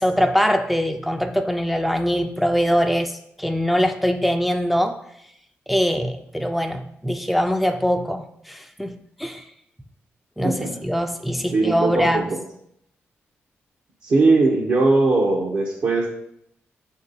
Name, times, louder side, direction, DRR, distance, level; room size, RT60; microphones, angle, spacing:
voice 1, 0.0-5.0 5.7-9.4 10.4-12.3, equal, ahead, 6 dB, 0.4 m, -22 dB
voice 2, 11.5-12.2 14.0-16.1, right 3 dB, 60° right, -3 dB, 0.7 m, -19 dB
4.5 x 2.7 x 3.9 m, 0.73 s
supercardioid pair, 45°, 5 cm